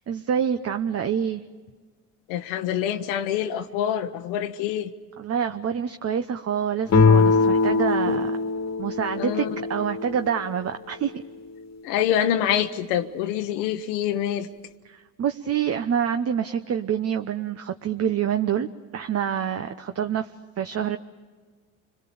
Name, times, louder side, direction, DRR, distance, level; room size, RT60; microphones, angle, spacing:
voice 1, 0.1-1.4 5.2-8.4 8.8-11.1 14.8-20.3 20.6-21.0, right 8 dB, 40° right, 1.0 m, -27 dB
voice 2, 2.3-4.9 8.1-8.2 9.2-9.5 11.8-14.5, left 10 dB, 80° left, 1.1 m, -26 dB
sound 1, 6.9-10.5, left 4 dB, 40° left, 1.6 m, -21 dB
29.5 x 22.0 x 7.1 m
hypercardioid pair, 65°, 38 cm